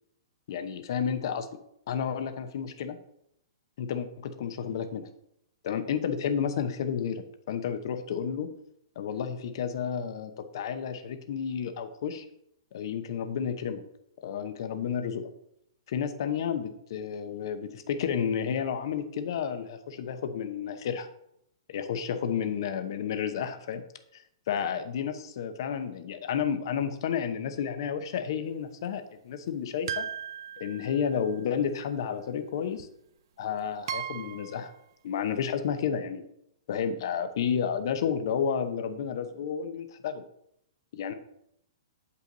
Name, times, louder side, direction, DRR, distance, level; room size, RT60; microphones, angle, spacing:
voice 1, 0.5-1.5 1.9-3.0 3.8-5.1 5.6-8.5 9.0-12.3 12.7-13.8 14.2-15.3 15.9-21.1 21.7-23.8 24.1-30.1 30.6-32.9 33.4-34.7 35.0-36.2 36.7-40.2 40.9-41.1, left 7 dB, 60° left, 9 dB, 0.8 m, -31 dB
sound 1, 29.9-31.4 32.8-32.9 33.9-34.7, right 8 dB, 60° right, 0.6 m, -37 dB
7.7 x 5.6 x 4.0 m, 0.77 s
hypercardioid pair, 150°, 3 cm